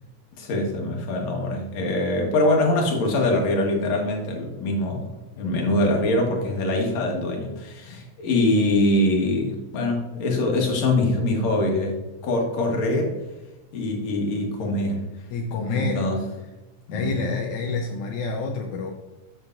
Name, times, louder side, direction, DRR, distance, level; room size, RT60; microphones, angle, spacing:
voice 1, 0.4-12.0 12.2-13.1 13.7-15.0 15.7-16.2 16.9-17.4, left 1 dB, 65° left, 0 dB, 2.6 m, -23 dB
voice 2, 15.3-16.1 16.9-18.9, left 4 dB, 80° left, 1 dB, 2.2 m, -28 dB
13.5 x 6.3 x 2.6 m, 1.1 s
omnidirectional pair, 3.4 m